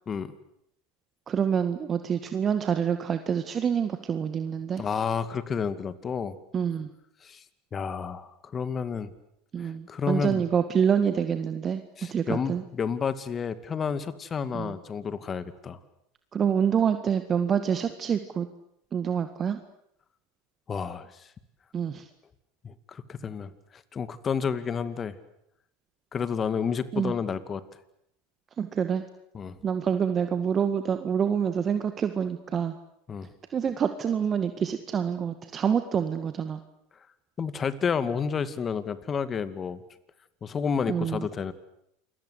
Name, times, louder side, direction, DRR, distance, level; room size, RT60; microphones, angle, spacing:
voice 1, 1.3-4.8 6.5-6.9 9.5-11.8 12.1-12.6 14.5-14.7 16.3-18.5 18.9-19.6 21.7-22.0 26.9-27.2 28.6-29.0 29.6-32.8 33.5-36.6 40.9-41.3, right 7 dB, 30° right, 9 dB, 1.9 m, -27 dB
voice 2, 4.8-6.4 7.2-7.4 7.7-9.1 9.6-10.4 12.0-15.8 20.7-21.3 22.6-25.2 26.1-27.6 29.3-29.6 33.1-33.3 37.4-39.8 40.4-41.5, left 6 dB, 30° left, 14 dB, 2.4 m, -30 dB
28.5 x 22.5 x 8.3 m, 0.77 s
hypercardioid pair, 85°, 0 cm